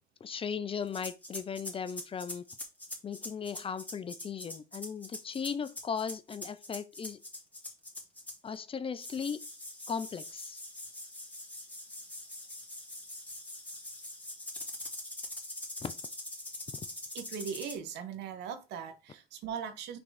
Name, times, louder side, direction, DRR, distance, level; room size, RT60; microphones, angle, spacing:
voice 1, 0.2-2.5 3.0-7.2 8.4-9.4 9.9-10.6 15.8-15.9, left 6 dB, 35° left, 0.7 m, -37 dB
sound 1, 0.9-8.6 9.0-17.8, left 1 dB, 10° left, 2.5 m, -43 dB
voice 2, 17.1-20.0, right 7 dB, 85° right, 1.5 m, -39 dB
6.1 x 3.9 x 4.9 m
cardioid pair, 110°, 17 cm